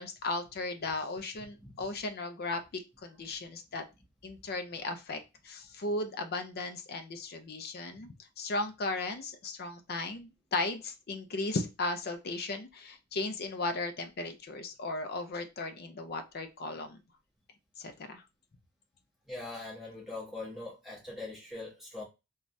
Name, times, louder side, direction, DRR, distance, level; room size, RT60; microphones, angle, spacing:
voice 1, 0.0-3.8 4.2-17.0 17.8-18.2, left 2 dB, 45° left, 7 dB, 0.5 m, -36 dB
voice 2, 19.3-22.0, left 2 dB, ahead, -4 dB, 1.1 m, -42 dB
3.2 x 2.3 x 2.6 m, 0.25 s
head